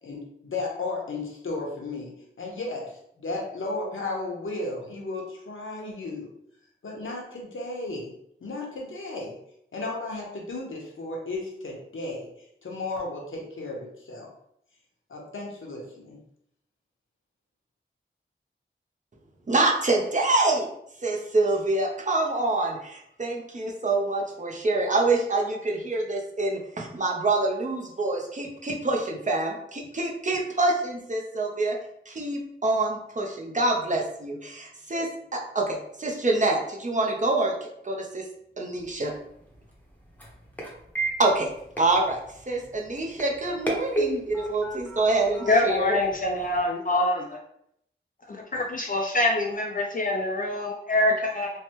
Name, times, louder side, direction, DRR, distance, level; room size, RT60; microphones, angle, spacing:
voice 1, 0.0-6.3 6.8-8.1 8.4-9.4 9.7-12.3 12.6-14.3 15.1-16.2, left 2 dB, 75° left, -1 dB, 0.8 m, -34 dB
voice 2, 19.5-20.7 21.0-31.7 32.1-35.1 35.3-38.2 38.6-39.1 41.2-41.5 41.8-42.2 42.5-46.0, right 2 dB, 35° right, -1 dB, 0.6 m, -26 dB
sound 1, 38.8-46.6, right 2 dB, 10° left, 0.7 m, -35 dB
voice 3, 45.5-47.4 48.3-51.5, left 2 dB, 40° left, 0 dB, 0.4 m, -25 dB
3.2 x 2.1 x 2.8 m, 0.72 s
wide cardioid pair, 80°, 21 cm